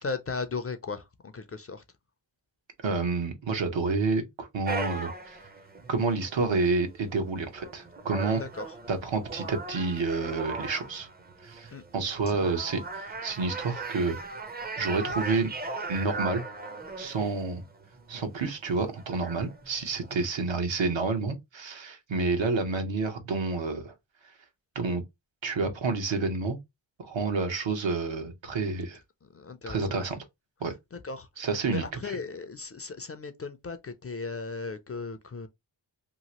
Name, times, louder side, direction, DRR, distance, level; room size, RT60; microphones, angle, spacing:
voice 1, 0.0-1.8 8.3-8.7 11.7-11.8 12.3-12.6 29.2-30.1 30.9-35.5, left 4 dB, 35° left, 0.4 m, -37 dB
voice 2, 2.8-5.4 5.9-8.4 8.9-11.1 11.4-14.2 14.8-15.5 15.9-16.4 17.0-17.6 18.1-23.9 24.7-25.0 25.4-26.6 27.0-29.0 29.7-30.2 30.6-30.7 31.4-32.2, right 4 dB, 70° right, 0.9 m, -29 dB
sound 1, 4.7-20.3, right 3 dB, 20° right, 0.5 m, -39 dB
2.9 x 2.4 x 2.8 m
wide cardioid pair, 75°, 47 cm